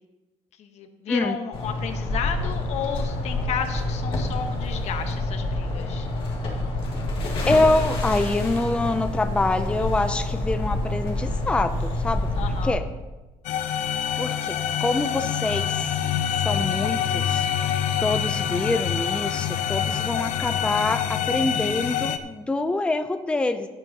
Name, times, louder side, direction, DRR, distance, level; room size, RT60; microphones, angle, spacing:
voice 1, 0.6-6.1 12.3-12.8, left 7 dB, 65° left, 7 dB, 1.2 m, -32 dB
sound 1, 1.5-12.7, left 2 dB, 45° left, 2.5 m, -27 dB
voice 2, 7.4-12.9 13.8-16.0 16.3-17.5 18.0-23.7, left 2 dB, 10° left, 9 dB, 0.5 m, -26 dB
sound 2, 13.4-22.2, left 9 dB, 85° left, 0.7 m, -26 dB
17.5 x 9.1 x 2.9 m, 1.1 s
cardioid pair, 130°, 12 cm